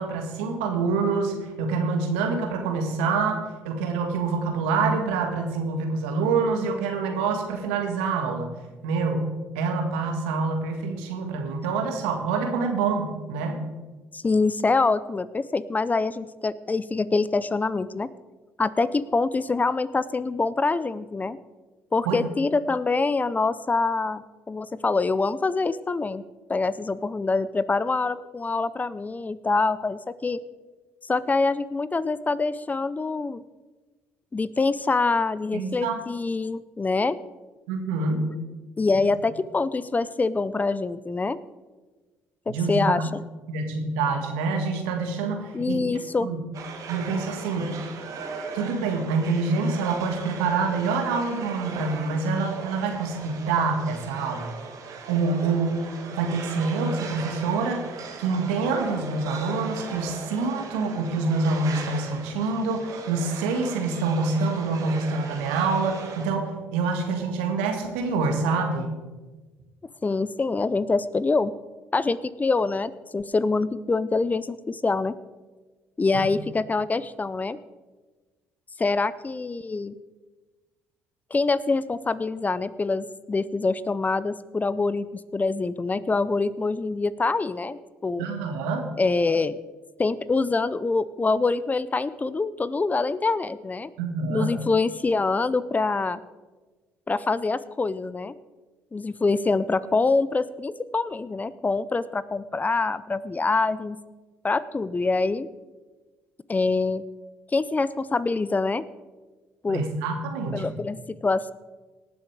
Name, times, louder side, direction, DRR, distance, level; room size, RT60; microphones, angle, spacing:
voice 1, 0.0-3.4 3.6-8.5 8.8-9.3 9.5-13.6 22.0-22.2 35.5-36.0 37.7-38.3 42.5-43.0 43.5-45.8 46.2-46.4 46.9-47.7 48.5-54.5 55.1-55.8 56.1-68.9 76.1-76.3 88.2-88.9 94.0-94.5 109.7-110.8, right 4 dB, 90° right, 4 dB, 1.7 m, -26 dB
voice 2, 14.1-18.1 18.6-21.4 21.9-26.2 26.5-30.4 31.1-33.4 34.3-37.2 38.8-41.4 42.5-43.2 45.5-46.3 70.0-71.5 71.9-75.1 76.0-77.6 78.8-80.0 81.3-88.2 89.0-89.6 90.0-93.9 94.3-96.2 97.1-98.3 98.9-104.0 104.4-105.5 106.5-107.0 107.5-108.8 109.6-109.8 110.5-111.5, left 3 dB, 25° left, 17 dB, 0.6 m, -25 dB
sound 1, 46.5-66.3, right 5 dB, 60° right, 2.1 m, -39 dB
18.5 x 7.1 x 4.8 m, 1.3 s
hypercardioid pair, 60°, 6 cm